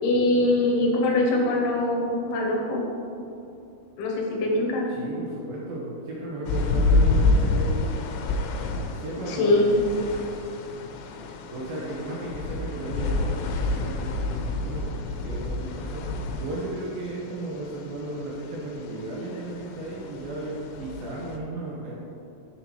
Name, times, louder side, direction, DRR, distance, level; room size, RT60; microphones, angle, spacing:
voice 1, 0.0-2.9 4.0-4.9 9.3-9.7, left 2 dB, 75° left, -1 dB, 2.5 m, -23 dB
voice 2, 4.9-7.9 8.9-9.8 11.5-21.9, right 1 dB, 75° right, -5 dB, 2.1 m, -35 dB
sound 1, 6.5-21.4, left 2 dB, 90° left, 3.3 m, -28 dB
8.1 x 7.1 x 4.6 m, 2.7 s
omnidirectional pair, 5.8 m